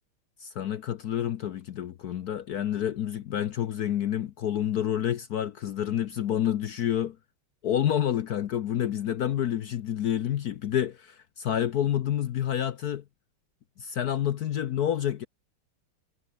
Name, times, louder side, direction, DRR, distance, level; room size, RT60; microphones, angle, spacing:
voice 1, 0.4-7.2 7.6-13.0 13.8-15.3, left 10 dB, 65° left, 1.0 m, -28 dB
omnidirectional pair, 2.4 m